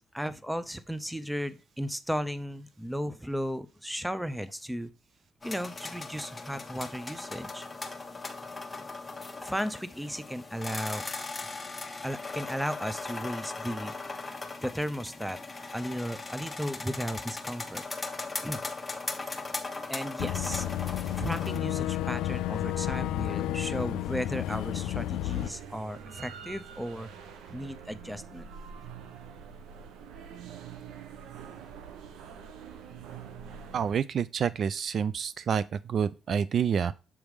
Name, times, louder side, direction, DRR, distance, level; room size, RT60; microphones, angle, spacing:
voice 1, 0.1-4.9 5.4-7.7 9.4-11.0 12.0-13.9 14.6-15.4 15.7-17.8 18.4-18.6 19.9-20.7 21.1-27.1 27.5-28.5, equal, 5° right, 0.6 m, -35 dB
sound 1, 5.4-21.6, left 3 dB, 20° left, 1.0 m, -38 dB
Boat Water vehicle / Engine, 20.2-25.5, left 13 dB, 90° left, 0.3 m, -31 dB
sound 2, 25.3-34.0, right 7 dB, 85° right, 0.7 m, -45 dB
voice 2, 33.7-36.9, right 7 dB, 55° right, 0.3 m, -28 dB
7.3 x 3.5 x 4.8 m
cardioid pair, 90°, 0 cm